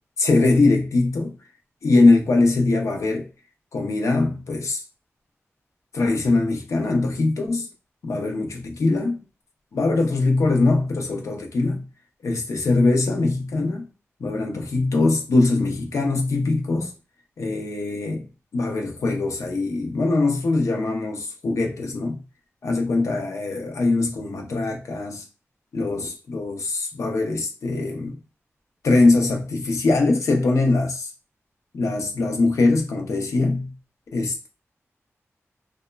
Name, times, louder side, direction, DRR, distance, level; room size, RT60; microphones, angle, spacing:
voice 1, 0.2-1.4 1.8-3.3 3.7-4.8 5.9-7.7 8.0-9.2 9.7-11.8 12.2-13.9 14.2-16.9 17.4-18.2 18.5-22.2 22.6-25.2 25.7-28.2 28.8-31.1 31.7-33.7 34.1-34.5, left 3 dB, 80° left, 0.5 m, -22 dB
2.9 x 2.1 x 2.2 m
wide cardioid pair, 120°, 5 cm